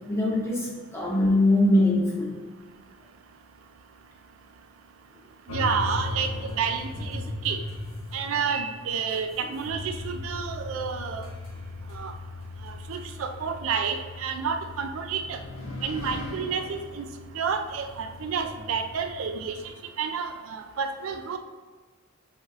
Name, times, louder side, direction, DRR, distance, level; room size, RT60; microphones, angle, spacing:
voice 1, 0.1-2.3 15.6-15.8, left 1 dB, 15° left, -4 dB, 0.9 m, -22 dB
sound 1, 5.5-19.7, left 2 dB, 90° left, 0.8 m, -38 dB
voice 2, 5.5-7.6 8.1-11.3 11.9-12.1 12.6-15.4 15.8-17.1 17.3-19.6 20.0-21.4, right 6 dB, 80° right, 6 dB, 0.4 m, -30 dB
5.5 x 3.1 x 2.4 m, 1.4 s
head